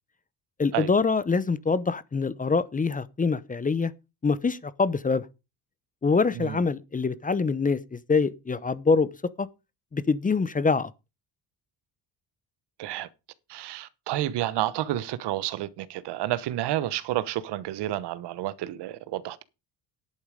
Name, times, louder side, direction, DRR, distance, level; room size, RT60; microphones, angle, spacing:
voice 1, 0.6-3.9 4.2-5.2 6.0-9.1 9.4-9.5 9.9-10.9, left 4 dB, 20° left, 0.7 m, -25 dB
voice 2, 13.5-19.4, right 14 dB, 80° right, 1.1 m, -30 dB
11.0 x 8.5 x 5.0 m
cardioid pair, 105°, 40 cm